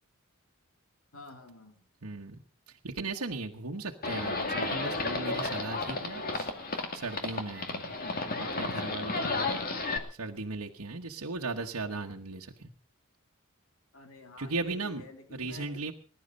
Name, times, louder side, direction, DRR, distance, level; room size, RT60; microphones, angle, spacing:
voice 1, 1.1-1.8 13.9-15.7, left 2 dB, 65° left, 5 dB, 2.9 m, -49 dB
voice 2, 2.0-2.4 2.7-7.9 8.4-9.6 10.1-12.7 14.4-15.0 15.3-15.9, right 3 dB, 90° right, 0 dB, 1.3 m, -37 dB
Livestock farm animals working animals, 4.0-10.0, left 3 dB, 45° left, 2.3 m, -33 dB
20.5 x 11.0 x 5.4 m, 0.40 s
head